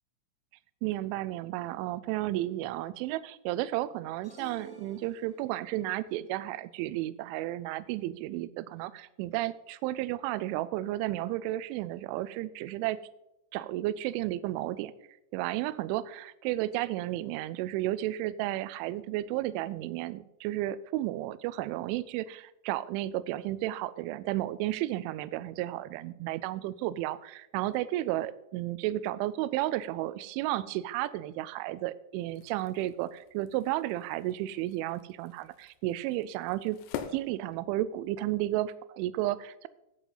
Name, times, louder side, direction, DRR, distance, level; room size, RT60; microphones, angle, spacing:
voice 1, 0.8-13.0 13.5-14.9 15.3-36.8 37.1-39.7, right 15 dB, 85° right, 17 dB, 2.8 m, -33 dB
sound 1, 4.2-5.8, right 1 dB, 5° right, 1.2 m, -51 dB
sound 2, 32.2-38.2, left 9 dB, 85° left, 3.4 m, -46 dB
13.0 x 8.0 x 3.9 m, 0.87 s
omnidirectional pair, 5.8 m